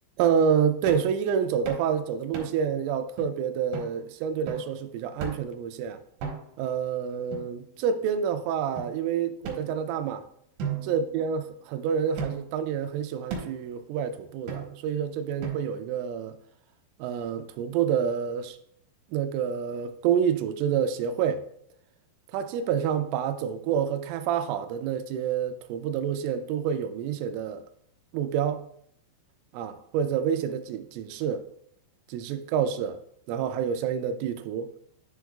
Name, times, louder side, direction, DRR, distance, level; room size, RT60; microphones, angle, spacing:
voice 1, 0.2-6.0 6.6-10.2 10.8-16.4 17.0-18.6 19.1-21.4 22.3-27.6 28.1-28.6 29.5-31.5 32.1-33.0 33.3-34.7, right 8 dB, 85° right, 3.0 m, -28 dB
sound 1, 0.9-1.1 1.7-1.9 2.3-2.7 3.2-3.3 3.7-3.9 4.5-4.7 5.2-5.6 6.2-6.7 7.3-8.0 8.8-8.9 9.4-10.1 10.6-11.6 12.2-12.6 13.3-13.7 14.5-14.9 15.4-15.9, right 6 dB, 70° right, 3.1 m, -36 dB
10.5 x 6.2 x 2.3 m
omnidirectional pair, 5.7 m